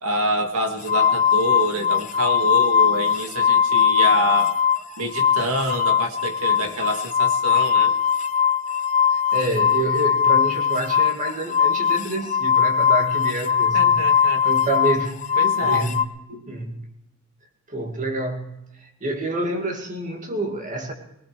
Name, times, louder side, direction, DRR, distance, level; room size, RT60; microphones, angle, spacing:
voice 1, 0.0-4.6 5.0-7.9 13.7-14.5 15.4-16.5, right 1 dB, 90° right, 6 dB, 1.8 m, -27 dB
sound 1, 0.8-4.8 5.1-16.0, left 7 dB, 35° left, 0.7 m, -20 dB
voice 2, 9.1-14.1 14.4-15.2 15.6-16.2 16.5-16.9 17.7-20.9, right 2 dB, 35° right, 3 dB, 2.2 m, -28 dB
22.0 x 19.0 x 3.3 m, 0.89 s
head